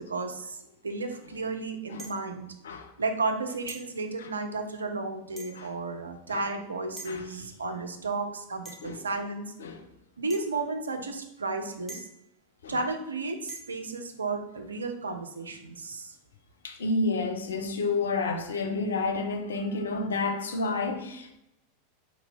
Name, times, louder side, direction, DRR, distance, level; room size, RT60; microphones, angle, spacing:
voice 1, 0.0-2.5 3.0-9.5 10.2-12.0 12.7-16.2, right 3 dB, 85° right, 0.5 m, -33 dB
sound 1, 2.0-2.4 3.7-3.9 5.4-5.7 7.0-7.2 8.7-9.0 10.3-10.5 11.9-12.3 13.5-13.8, right 2 dB, 5° right, 1.1 m, -45 dB
voice 2, 7.0-7.5 8.8-9.0 9.6-9.9 12.6-12.8 16.6-21.4, left 3 dB, 75° left, 0.6 m, -30 dB
3.9 x 2.9 x 4.6 m
figure-of-eight pair, 90°, 0 cm